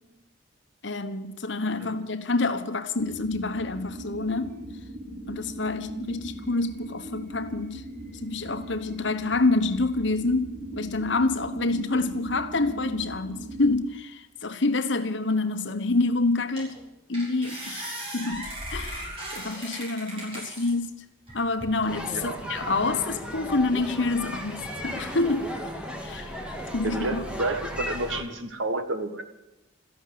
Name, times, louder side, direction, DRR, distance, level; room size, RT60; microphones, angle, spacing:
voice 1, 0.8-4.6 5.3-7.9 8.2-16.8 17.1-17.9 18.1-21.0 21.3-25.6 26.0-26.4 26.7-27.2, left 3 dB, 70° left, 1.2 m, -27 dB
sound 1, 3.0-13.7, right 1 dB, 45° right, 6.3 m, -39 dB
sound 2, 15.9-16.0 16.6-16.8 17.1-20.7 21.3-21.9, right 1 dB, 30° right, 6.6 m, -37 dB
sound 3, 21.9-28.2, left 1 dB, 5° right, 1.9 m, -35 dB
voice 2, 22.1-22.4 26.8-29.2, right 2 dB, 85° right, 1.6 m, -30 dB
14.0 x 11.0 x 9.5 m
head